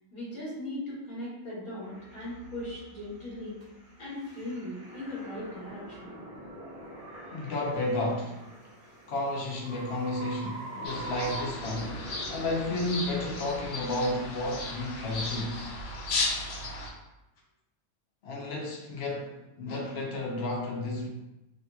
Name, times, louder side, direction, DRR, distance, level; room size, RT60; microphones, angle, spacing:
voice 1, 0.1-3.6 4.0-6.1, left 1 dB, 45° left, -7 dB, 1.3 m, -38 dB
sound 1, 1.8-13.5, equal, 80° right, 1.5 m, -48 dB
sound 2, 3.6-3.7 4.3-4.5 5.1-5.3 7.9-12.4, right 2 dB, 35° right, 0.5 m, -43 dB
voice 2, 7.3-8.4 9.1-12.0 12.3-15.6 18.2-21.1, left 2 dB, 65° left, -1 dB, 0.9 m, -32 dB
sound 3, 10.8-16.9, left 2 dB, 90° left, 1.0 m, -35 dB
3.2 x 2.9 x 2.3 m, 0.96 s
omnidirectional pair, 1.2 m